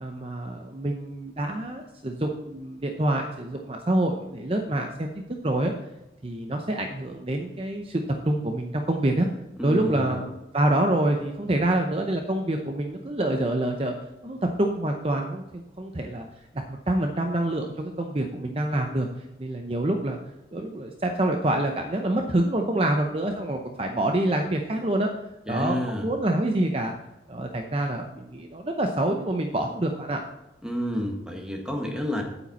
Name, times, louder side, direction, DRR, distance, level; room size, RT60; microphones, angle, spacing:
voice 1, 0.0-5.7 6.2-9.3 9.6-13.9 14.2-16.3 16.5-19.1 19.4-20.2 20.5-25.1 25.5-26.9 27.3-30.2, right 1 dB, 30° right, 3 dB, 0.7 m, -26 dB
voice 2, 9.6-10.2 25.5-26.1 30.6-32.2, equal, 5° right, 1 dB, 1.5 m, -29 dB
8.8 x 8.5 x 4.1 m, 0.96 s
head